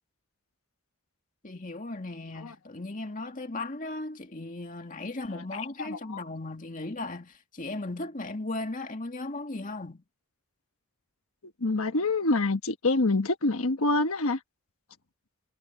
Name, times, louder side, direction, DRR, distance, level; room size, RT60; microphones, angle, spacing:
voice 1, 1.4-10.0, left 2 dB, 35° left, 2.1 m, -36 dB
voice 2, 5.3-6.2 11.6-14.4, left 2 dB, 75° left, 1.3 m, -27 dB
head